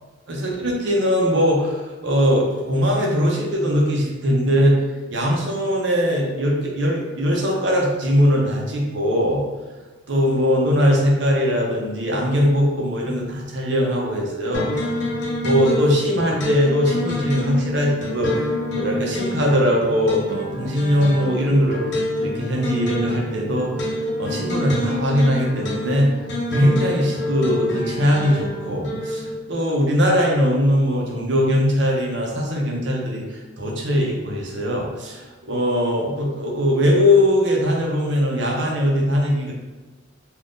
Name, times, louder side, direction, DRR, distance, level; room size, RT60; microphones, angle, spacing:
voice 1, 0.3-4.8 5.1-9.4 10.1-14.8 15.4-18.5 18.7-21.8 22.2-23.9 24.2-26.1 26.5-39.5, equal, 60° right, -1 dB, 0.6 m, -20 dB
sound 1, 14.5-29.3, left 1 dB, 60° left, 0.7 m, -27 dB
2.5 x 2.4 x 3.5 m, 1.2 s
head